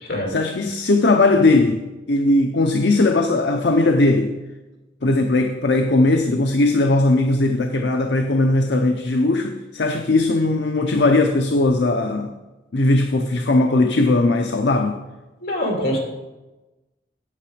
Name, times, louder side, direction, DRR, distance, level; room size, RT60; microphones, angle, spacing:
voice 1, 0.3-1.8 2.1-4.3 5.0-12.3 12.7-15.0, left 2 dB, 80° left, 5 dB, 0.7 m, -18 dB
voice 2, 15.4-16.0, left 1 dB, 65° left, 0 dB, 2.8 m, -24 dB
8.7 x 8.4 x 5.1 m, 1.1 s
head